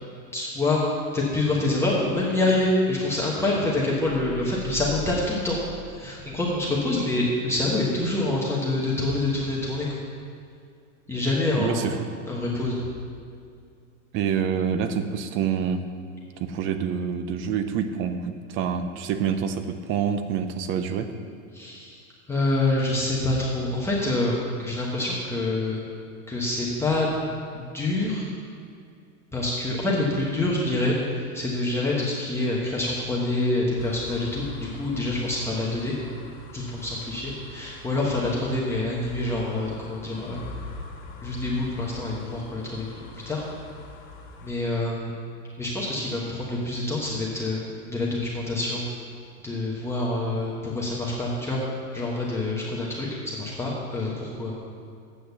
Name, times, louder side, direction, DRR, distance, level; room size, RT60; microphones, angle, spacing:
voice 1, 0.3-0.8 1.1-5.6 5.9-9.9 11.1-11.8 12.3-12.8 21.5-22.0 22.3-25.8 26.3-27.3 27.5-28.2 29.3-35.9 36.5-40.4 41.2-42.9 43.2-43.4 44.4-45.1 45.6-47.6 47.9-48.8 49.4-51.6 51.9-54.5, left 2 dB, 5° left, -6 dB, 1.2 m, -26 dB
sound 1, 4.0-6.7, right 1 dB, 55° right, 2.0 m, -41 dB
voice 2, 11.6-12.1 14.1-15.8 16.4-21.1, right 7 dB, 35° right, 9 dB, 0.6 m, -27 dB
sound 2, 33.8-44.5, left 3 dB, 50° left, 1.9 m, -43 dB
8.2 x 6.3 x 6.9 m, 2.3 s
supercardioid pair, 140°, 39 cm